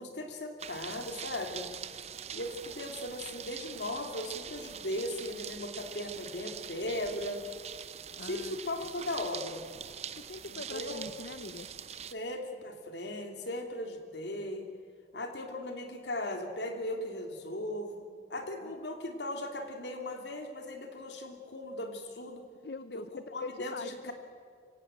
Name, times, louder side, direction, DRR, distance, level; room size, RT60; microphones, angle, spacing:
voice 1, 0.0-1.7 2.3-7.4 8.3-9.6 10.5-11.0 12.1-14.7 15.1-22.5 22.9-24.1, left 1 dB, 90° left, 4 dB, 3.0 m, -38 dB
sound 1, 0.6-12.1, right 8 dB, 40° right, 0.7 m, -44 dB
voice 2, 8.2-8.6 10.2-11.7 22.6-24.1, left 3 dB, 70° left, 12 dB, 0.6 m, -43 dB
25.0 x 17.0 x 7.7 m, 2.2 s
head